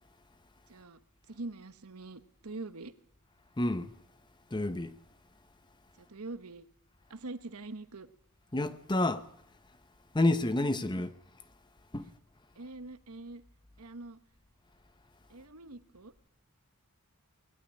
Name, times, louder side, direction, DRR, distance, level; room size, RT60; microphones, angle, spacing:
voice 1, 0.7-1.0 1.3-2.9 6.0-6.7 7.1-8.1 10.6-10.7 12.5-13.4 13.8-14.2 15.3-16.1, right 2 dB, 80° right, 1.2 m, -44 dB
voice 2, 3.6-3.9 4.5-5.0 8.5-9.3 10.1-11.1 11.9-12.1, left 2 dB, 20° left, 0.8 m, -29 dB
20.0 x 15.5 x 10.0 m
head